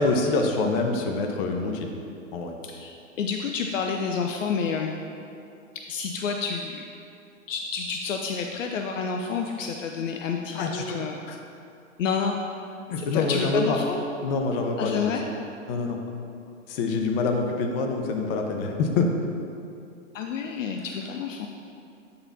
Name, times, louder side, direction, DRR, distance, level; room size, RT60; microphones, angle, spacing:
voice 1, 0.0-1.9 2.3-2.5 10.5-11.4 12.9-13.8 14.2-15.1 15.7-16.0 16.7-19.1, left 3 dB, 45° left, 3 dB, 1.0 m, -26 dB
voice 2, 2.6-5.0 5.7-6.8 7.5-11.2 12.0-12.4 13.0-14.0 14.8-15.2 20.1-21.5, left 5 dB, 75° left, 3 dB, 0.6 m, -29 dB
8.8 x 6.8 x 2.7 m, 2.6 s
hypercardioid pair, 115°, 39 cm